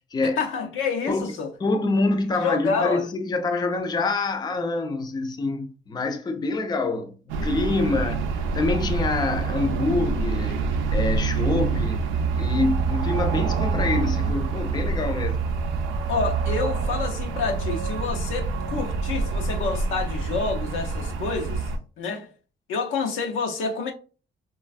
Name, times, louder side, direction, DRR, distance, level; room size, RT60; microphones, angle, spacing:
voice 1, 0.4-1.5 2.4-3.0 16.1-21.6 22.0-22.3 22.7-23.9, left 4 dB, 85° left, 0.7 m, -28 dB
voice 2, 1.6-7.1 7.4-8.3 8.5-10.6 10.9-12.1 12.4-15.5, left 3 dB, 20° left, 0.4 m, -26 dB
sound 1, 7.3-21.8, right 4 dB, 85° right, 0.5 m, -26 dB
3.1 x 2.3 x 2.4 m
cardioid pair, 90°, 20 cm